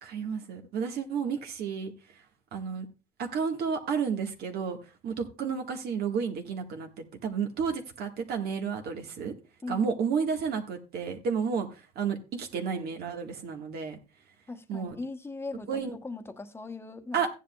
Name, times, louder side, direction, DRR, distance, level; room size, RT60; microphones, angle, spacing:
voice 1, 0.0-1.9 2.5-2.8 3.2-4.8 5.0-6.9 7.2-9.3 9.7-14.0 14.7-14.9 15.7-16.0 17.1-17.3, right 6 dB, 70° right, 1.6 m, -31 dB
voice 2, 14.5-17.2, left 3 dB, 15° left, 1.0 m, -39 dB
15.0 x 10.0 x 2.3 m
cardioid pair, 110°, 17 cm